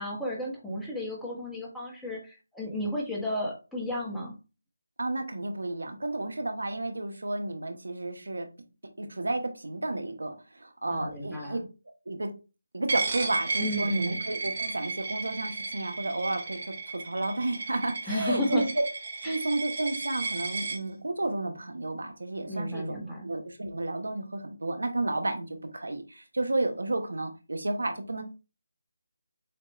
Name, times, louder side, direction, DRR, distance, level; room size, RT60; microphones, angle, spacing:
voice 1, 0.0-4.3 10.9-11.6 13.6-14.2 18.1-18.7 19.2-19.4 22.5-23.3, left 1 dB, ahead, -4 dB, 1.1 m, -33 dB
voice 2, 5.0-8.5 9.0-11.6 12.1-12.3 12.7-18.7 19.2-23.0 23.2-25.5 25.7-28.2, right 2 dB, 90° right, 6 dB, 1.1 m, -32 dB
Coin (dropping), 12.9-20.8, right 4 dB, 45° right, 1.0 m, -34 dB
6.5 x 2.5 x 3.1 m, 0.31 s
figure-of-eight pair, 165°, 0 cm